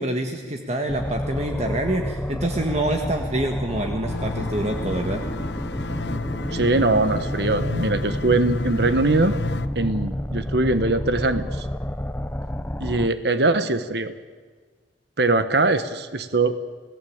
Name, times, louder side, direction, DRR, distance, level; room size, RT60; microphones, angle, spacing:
voice 1, 0.0-5.2, right 1 dB, 40° right, 4 dB, 1.8 m, -26 dB
sound 1, 0.9-13.1, equal, 10° left, 0.8 m, -30 dB
sound 2, 4.1-9.7, left 2 dB, 70° left, 1.0 m, -31 dB
voice 2, 6.5-9.4 9.7-11.7 12.8-14.1 15.2-16.5, right 2 dB, 65° right, 11 dB, 1.3 m, -21 dB
29.5 x 18.5 x 8.8 m, 1.5 s
head